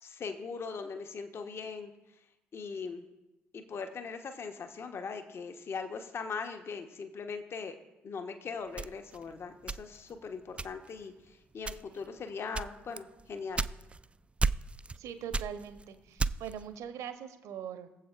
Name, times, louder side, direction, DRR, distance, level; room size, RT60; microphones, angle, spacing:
voice 1, 0.0-1.9 2.5-3.0 3.5-7.8 8.0-13.7, left 5 dB, 40° left, 7 dB, 1.1 m, -40 dB
sound 1, 8.8-10.2 10.6-11.0 11.6-12.1 12.5-14.1 14.4-15.0 15.3-16.6, right 3 dB, 20° right, 0.4 m, -33 dB
voice 2, 15.0-17.9, right 9 dB, 55° right, 10 dB, 0.9 m, -42 dB
22.0 x 7.7 x 2.5 m, 1.0 s
figure-of-eight pair, 45°, 6 cm